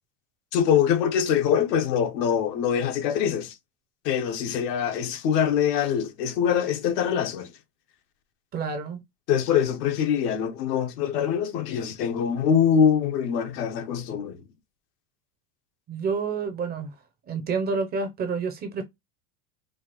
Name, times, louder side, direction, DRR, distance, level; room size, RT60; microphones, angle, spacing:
voice 1, 0.5-3.6 4.0-7.5 9.3-14.4, left 8 dB, 80° left, 1.0 m, -24 dB
voice 2, 8.5-9.0 15.9-16.9 17.3-18.8, right 5 dB, 20° right, 0.4 m, -28 dB
4.5 x 2.4 x 2.9 m
supercardioid pair, 125°, 48 cm